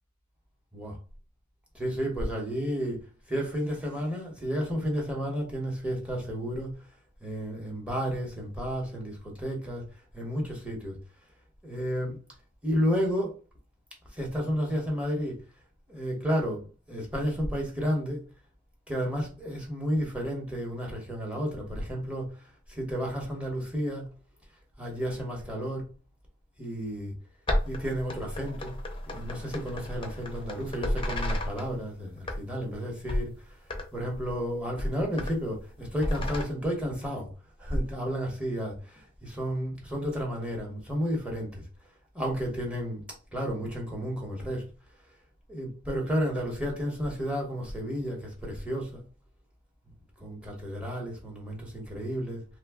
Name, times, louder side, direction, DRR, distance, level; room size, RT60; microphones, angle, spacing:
voice 1, 1.7-6.7 7.2-9.8 10.1-10.9 11.6-12.2 12.6-13.4 14.1-15.4 15.9-18.2 18.9-22.3 22.7-24.0 24.8-25.9 26.6-27.1 27.6-28.7 29.1-33.4 33.9-37.3 37.6-41.6 42.1-43.0 43.3-44.6 45.5-49.0 50.2-52.5, equal, 5° right, 0.9 m, -32 dB
sound 1, 27.5-31.7 32.2-32.7 33.0-33.3 33.7-33.9 34.1-34.4 34.7-35.4 35.9-36.4, left 1 dB, 25° left, 0.5 m, -32 dB
2.7 x 2.1 x 3.5 m
head